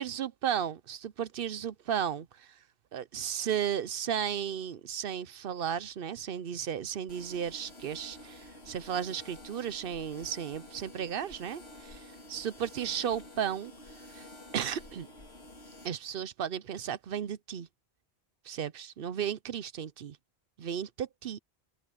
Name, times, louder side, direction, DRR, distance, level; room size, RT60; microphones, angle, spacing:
voice 1, 0.0-2.5 2.9-13.7 14.1-14.3 14.5-15.1 15.8-17.7 18.4-20.2 20.6-21.4, right 8 dB, 65° right, 0.8 m, -34 dB
sound 1, 7.1-15.9, left 1 dB, 85° left, 3.6 m, -50 dB
open air
omnidirectional pair, 1.1 m